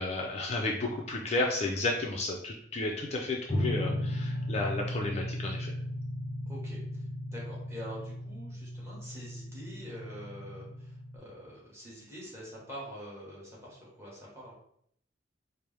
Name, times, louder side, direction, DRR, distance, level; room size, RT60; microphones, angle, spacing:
voice 1, 0.0-5.7, left 2 dB, 35° left, 0 dB, 0.4 m, -32 dB
sound 1, 3.5-11.2, left 1 dB, 15° left, 0.8 m, -36 dB
voice 2, 6.5-14.5, equal, 15° right, -6 dB, 1.3 m, -45 dB
4.4 x 2.0 x 3.4 m, 0.70 s
head